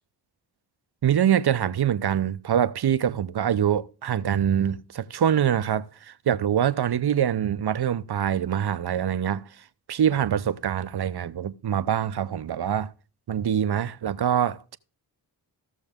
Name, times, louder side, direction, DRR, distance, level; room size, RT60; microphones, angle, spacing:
voice 1, 1.0-9.4 9.9-12.9 13.3-14.8, right 9 dB, 60° right, 0.7 m, -24 dB
15.5 x 6.4 x 3.6 m
cardioid pair, 40°, 45 cm